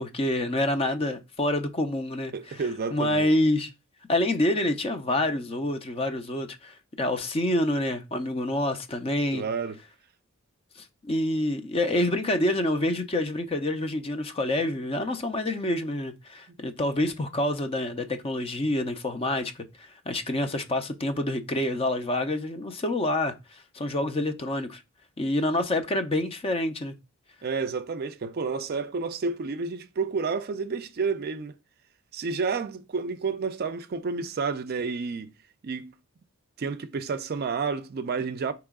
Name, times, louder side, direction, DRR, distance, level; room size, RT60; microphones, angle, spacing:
voice 1, 0.0-2.6 2.9-3.7 4.1-9.4 11.0-23.3 23.7-24.8 25.2-26.9, left 1 dB, 25° left, 0.5 m, -27 dB
voice 2, 2.3-3.3 9.3-9.8 27.4-31.5 32.1-35.3 35.6-35.9 36.6-38.5, right 4 dB, 45° right, 0.4 m, -30 dB
4.8 x 2.9 x 3.5 m
head